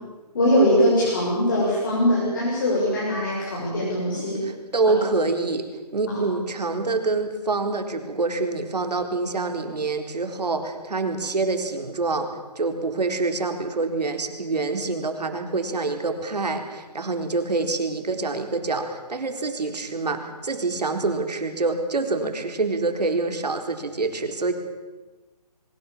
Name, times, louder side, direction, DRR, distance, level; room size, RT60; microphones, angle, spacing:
voice 1, 0.3-4.4 4.8-5.0 6.1-6.2, equal, 30° left, -6 dB, 6.6 m, -21 dB
voice 2, 4.4-5.7 5.9-24.5, right 3 dB, 75° right, 6 dB, 4.2 m, -26 dB
23.0 x 22.5 x 7.3 m, 1.2 s
hypercardioid pair, 180°, 21 cm